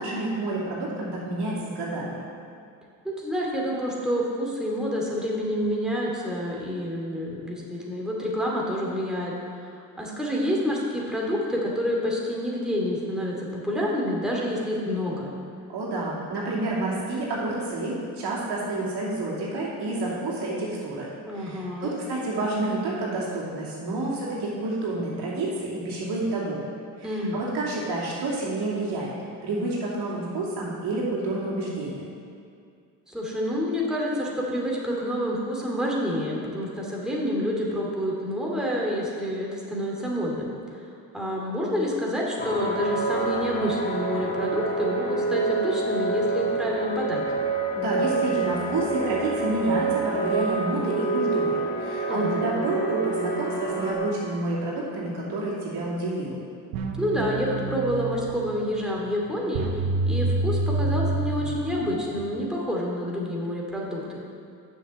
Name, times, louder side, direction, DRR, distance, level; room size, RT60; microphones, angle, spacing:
voice 1, 0.0-2.2 15.7-21.1 21.3-26.6 27.0-29.1 29.4-32.0 47.7-56.4, right 2 dB, 65° right, -5 dB, 2.7 m, -29 dB
voice 2, 3.0-15.3 21.3-22.0 27.0-27.4 33.1-40.5 41.1-47.2 52.1-52.5 57.0-59.7 60.1-64.2, equal, ahead, -4 dB, 2.5 m, -28 dB
sound 1, 42.4-53.9, right 3 dB, 20° left, 1.8 m, -27 dB
sound 2, 56.7-62.3, right 3 dB, 85° right, 1.0 m, -28 dB
7.3 x 7.0 x 6.9 m, 2.3 s
supercardioid pair, 65°, 43 cm